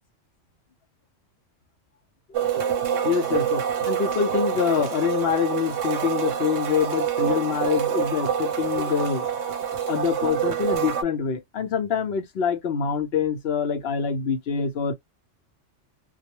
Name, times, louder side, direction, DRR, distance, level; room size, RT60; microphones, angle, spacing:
sound 1, 2.3-11.0, right 8 dB, 85° right, 1.0 m, -26 dB
voice 1, 3.0-9.3 9.9-14.9, left 7 dB, 60° left, 0.9 m, -25 dB
2.3 x 2.0 x 2.9 m
omnidirectional pair, 1.3 m